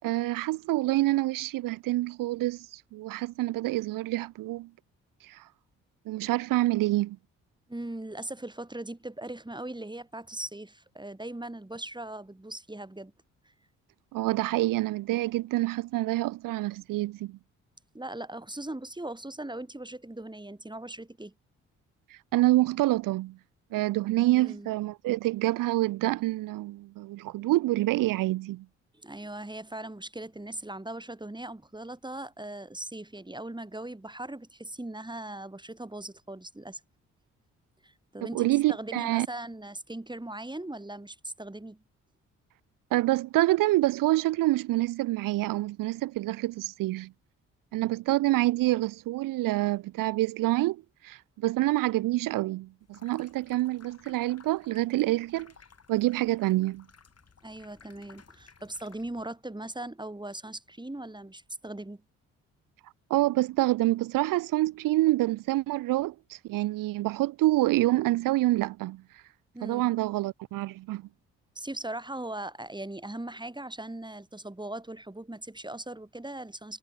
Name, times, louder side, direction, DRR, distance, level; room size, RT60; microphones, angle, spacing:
voice 1, 0.0-4.7 5.2-5.4 6.1-7.2 14.1-17.4 22.1-23.4 23.7-28.6 38.3-39.3 42.9-47.1 47.7-55.5 55.9-56.8 63.1-69.0 69.6-71.0, right 17 dB, 60° right, 0.6 m, -27 dB
voice 2, 7.7-13.1 17.9-21.3 24.3-24.7 28.9-36.8 37.8-41.8 57.4-62.0 69.5-69.9 71.5-76.8, right 1 dB, 10° right, 4.7 m, -39 dB
Water tap faucet / Sink (filling or washing), 52.8-59.3, left 6 dB, 40° left, 4.4 m, -57 dB
hypercardioid pair, 40°, 37 cm